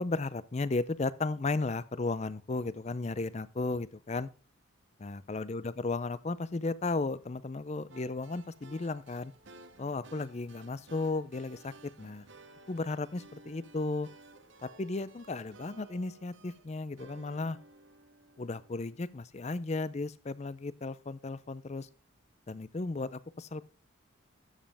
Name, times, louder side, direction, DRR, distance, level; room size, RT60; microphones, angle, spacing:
voice 1, 0.0-4.3 5.0-9.3 9.8-11.7 12.0-12.3 12.7-14.1 14.6-17.6 18.4-21.9 22.5-23.6, left 3 dB, 30° left, 0.5 m, -34 dB
sound 1, 7.9-19.0, right 2 dB, 60° right, 0.9 m, -56 dB
12.5 x 7.5 x 3.4 m
head